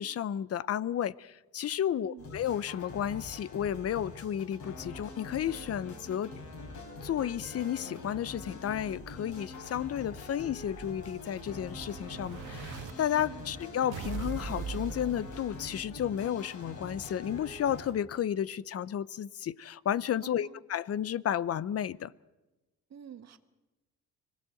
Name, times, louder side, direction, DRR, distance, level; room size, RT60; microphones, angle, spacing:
voice 1, 0.0-6.3 7.0-22.1, left 10 dB, 50° left, 19 dB, 0.7 m, -32 dB
voice 2, 2.0-2.3 13.2-13.5 20.2-20.6 22.9-23.4, right 9 dB, 60° right, 8 dB, 1.8 m, -48 dB
sound 1, 2.2-17.9, left 2 dB, 75° left, 5.2 m, -45 dB
Explosion, 9.6-12.9 13.9-15.9, right 5 dB, 85° right, 1.5 m, -42 dB
25.0 x 18.0 x 7.8 m, 1.1 s
cardioid pair, 90°, 30 cm